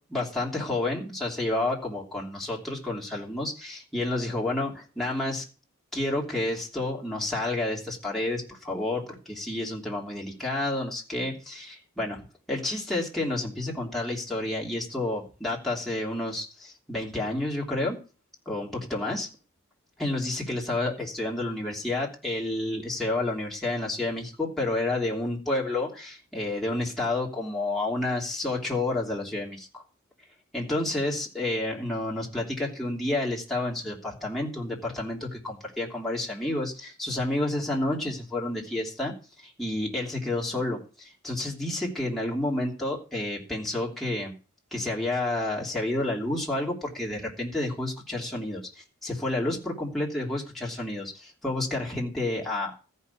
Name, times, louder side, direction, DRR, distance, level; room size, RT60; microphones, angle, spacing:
voice 1, 0.1-5.4 5.9-18.0 18.4-19.3 20.0-29.8 30.5-44.3 44.7-52.7, left 2 dB, ahead, -4 dB, 3.1 m, -30 dB
14.0 x 5.6 x 8.2 m, 0.35 s
head